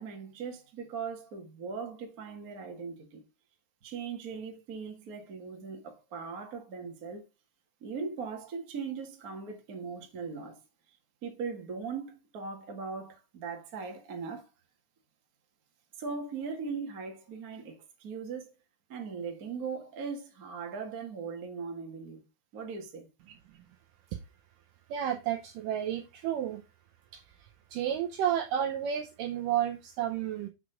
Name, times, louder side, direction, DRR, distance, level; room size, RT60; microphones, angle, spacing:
voice 1, 0.0-3.2 3.8-7.2 7.8-10.6 11.2-14.5 16.0-18.5 18.9-22.2 22.5-23.1, right 5 dB, 50° right, 1.0 m, -39 dB
voice 2, 24.9-26.6 27.1-27.2 27.7-30.5, right 10 dB, 80° right, 2.0 m, -31 dB
6.2 x 5.0 x 5.0 m
omnidirectional pair, 4.5 m